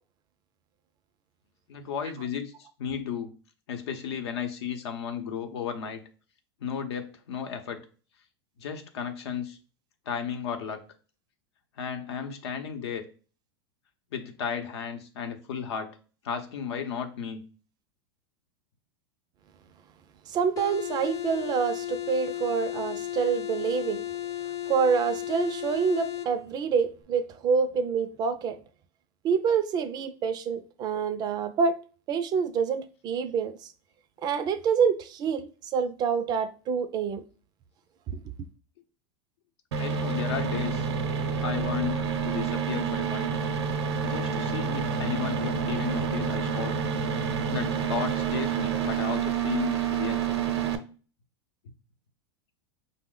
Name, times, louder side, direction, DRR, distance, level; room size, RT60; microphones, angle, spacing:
voice 1, 1.7-3.3 3.7-6.0 6.6-7.8 8.6-9.6 10.1-10.8 11.8-13.1 14.1-15.9 16.2-17.4 39.8-40.9 41.4-43.3 44.0-46.7 47.5-50.3, left 7 dB, 80° left, 0.7 m, -34 dB
voice 2, 20.3-24.0 24.7-28.6 29.2-31.8 32.1-33.6 34.2-37.2 38.1-38.2, right 6 dB, 30° right, 0.4 m, -27 dB
sound 1, 20.6-26.3, left 13 dB, 25° left, 0.5 m, -34 dB
sound 2, 39.7-50.7, right 6 dB, 85° right, 0.6 m, -28 dB
5.1 x 2.0 x 3.8 m
supercardioid pair, 125°, 14 cm